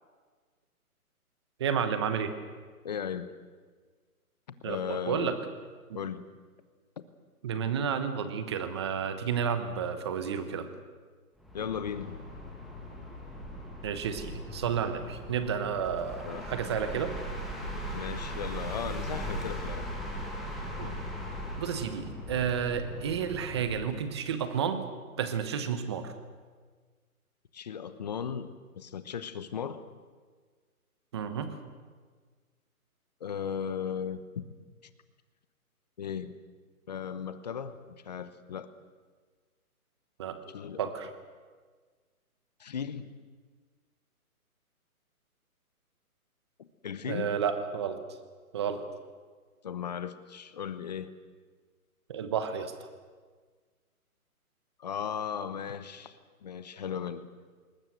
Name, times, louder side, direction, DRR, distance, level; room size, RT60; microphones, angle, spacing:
voice 1, 1.6-2.3 4.6-5.4 5.9-6.0 7.4-10.7 13.8-17.1 20.8-20.9 21.6-24.8 25.2-26.1 31.1-31.5 40.2-40.4 40.8-41.1 47.0-48.0 48.5-48.9 52.1-52.9, right 7 dB, 20° right, 10 dB, 1.0 m, -31 dB
voice 2, 2.8-3.3 4.6-5.3 5.9-6.3 11.5-12.1 16.2-16.4 17.9-19.9 23.1-23.2 27.5-29.8 33.2-34.4 36.0-36.3 36.9-37.8 38.0-38.7 40.5-40.9 42.6-43.1 46.6-47.3 49.6-51.1 54.8-57.3, left 7 dB, 30° left, 13 dB, 1.0 m, -36 dB
sound 1, 11.4-24.1, equal, ahead, 1.4 m, -39 dB
21.0 x 20.0 x 8.0 m, 1.5 s
hypercardioid pair, 165°, 44 cm